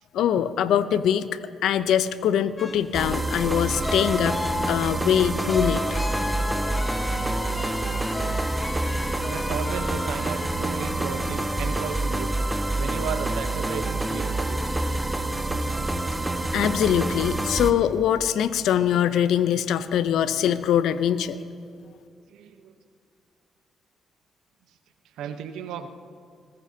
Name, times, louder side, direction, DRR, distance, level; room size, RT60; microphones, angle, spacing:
voice 1, 0.1-1.3 1.6-4.4 4.7-5.8 16.5-21.4, left 9 dB, 80° left, 14 dB, 0.6 m, -23 dB
sound 1, 2.6-12.2, left 3 dB, 30° left, 1.1 m, -35 dB
sound 2, 2.9-17.7, right 2 dB, 15° right, 1.3 m, -27 dB
voice 2, 9.3-12.3 12.7-15.1 15.6-16.3 19.9-20.0 22.3-22.8 25.1-25.9, right 7 dB, 80° right, 9 dB, 0.9 m, -35 dB
20.5 x 19.5 x 2.8 m, 2.4 s
supercardioid pair, 55°, 0 cm